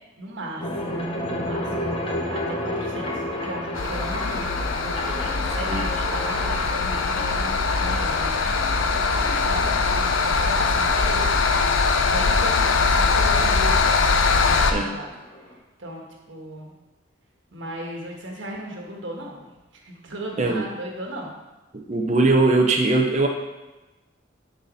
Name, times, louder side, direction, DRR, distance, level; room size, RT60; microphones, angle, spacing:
voice 1, 0.2-1.9 2.3-11.4 11.7-13.9 14.3-15.1 15.8-16.7 17.5-19.5 19.8-21.3, right 1 dB, 65° right, 0 dB, 1.5 m, -36 dB
sound 1, 0.6-15.6, left 1 dB, 25° left, 1.0 m, -33 dB
sound 2, 3.8-14.7, left 4 dB, 75° left, 0.6 m, -22 dB
voice 2, 21.7-23.3, right 2 dB, 35° right, 1 dB, 0.7 m, -20 dB
10.5 x 4.2 x 4.1 m, 1.1 s
head